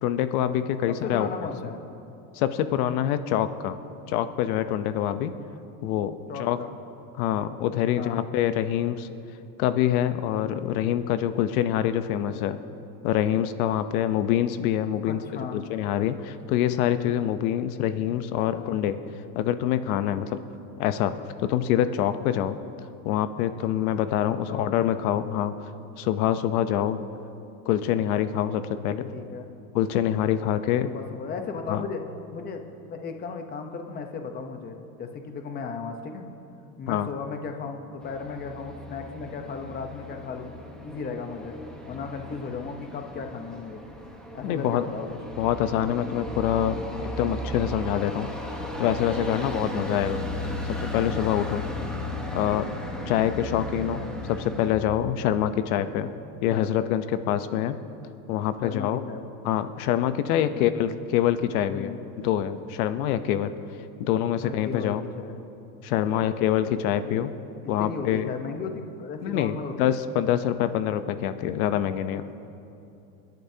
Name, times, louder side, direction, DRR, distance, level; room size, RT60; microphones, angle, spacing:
voice 1, 0.0-1.3 2.3-3.8 4.1-5.3 5.8-6.1 6.4-6.6 7.2-9.1 9.6-12.6 13.0-19.0 19.3-20.4 20.8-21.1 21.4-22.6 23.0-25.5 26.0-27.0 27.7-29.1 29.7-30.9 31.7-31.8 36.9-37.1 44.4-44.8 45.4-48.3 48.8-50.2 50.6-51.6 52.3-52.8 53.1-54.0 54.3-56.1 56.4-57.8 58.3-59.0 59.4-63.5 64.0-65.0 65.8-67.3 67.7-68.3 69.2-72.2, left 11 dB, 85° left, 11 dB, 0.8 m, -25 dB
voice 2, 0.9-1.8 6.3-6.7 8.0-8.2 15.1-15.6 18.5-18.8 24.5-24.9 29.1-29.5 30.8-32.0 32.3-36.3 36.8-40.5 40.8-41.6 41.9-43.8 44.3-45.2 50.7-50.9 53.9-54.1 56.5-56.7 58.6-59.2 60.4-60.7 61.7-62.0 64.4-65.3 66.1-66.4 67.6-70.0, left 5 dB, 20° left, 5 dB, 0.8 m, -36 dB
sound 1, 38.0-54.8, left 1 dB, ahead, 1.1 m, -35 dB
29.5 x 10.5 x 2.8 m, 2.7 s
cardioid pair, 155°, 42 cm